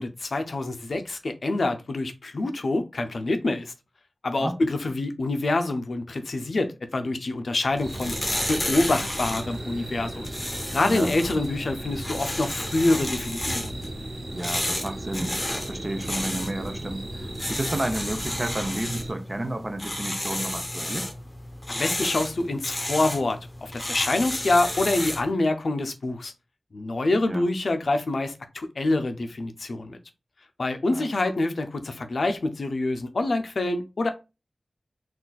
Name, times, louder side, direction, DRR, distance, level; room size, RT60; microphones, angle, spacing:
voice 1, 0.0-3.7 4.2-8.2 8.5-10.3 10.7-13.7 21.7-26.3 26.7-30.0 30.6-34.1, left 2 dB, 75° left, 0.4 m, -26 dB
sound 1, 7.7-25.3, left 1 dB, 30° left, 0.8 m, -32 dB
sound 2, 7.8-19.1, right 1 dB, 80° right, 0.7 m, -37 dB
voice 2, 10.8-11.1 14.3-21.1 27.3-27.5 30.9-31.1, right 1 dB, 35° right, 0.5 m, -31 dB
3.8 x 2.3 x 2.3 m
wide cardioid pair, 60°, 0 cm